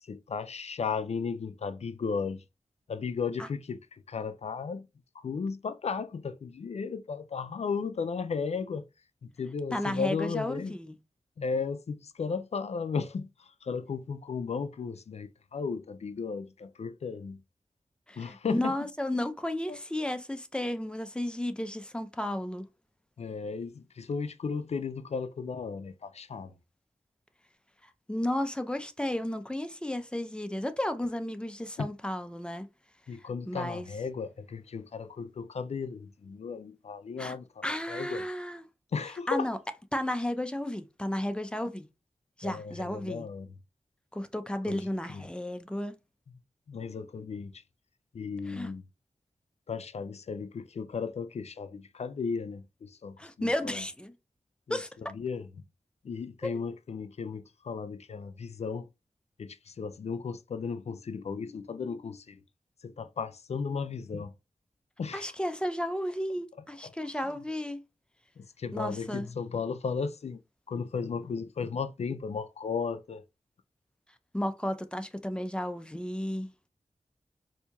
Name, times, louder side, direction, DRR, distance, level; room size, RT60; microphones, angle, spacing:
voice 1, 0.0-2.4 2.9-4.9 5.1-8.9 9.2-10.8 11.4-17.4 18.2-18.7 19.7-19.8 23.2-26.5 31.8-31.9 33.1-38.2 38.9-39.5 42.4-43.5 44.7-45.3 46.7-47.6 48.1-48.9 49.7-53.8 54.7-54.8 55.1-55.5 56.0-58.9 59.4-62.4 62.8-64.3 65.0-65.3 66.8-66.9 68.4-70.4 70.7-73.2, left 5 dB, 60° left, 0.4 m, -35 dB
voice 2, 9.7-11.0 18.1-22.7 28.1-32.7 33.5-33.9 37.2-37.3 37.6-38.6 39.3-39.6 39.9-41.9 42.4-43.3 44.1-46.0 48.5-48.7 53.2-54.1 54.7-54.9 56.4-56.6 65.1-67.8 68.7-69.3 74.3-76.5, left 1 dB, 10° left, 0.5 m, -33 dB
4.3 x 2.7 x 2.3 m
wide cardioid pair, 65°, 12 cm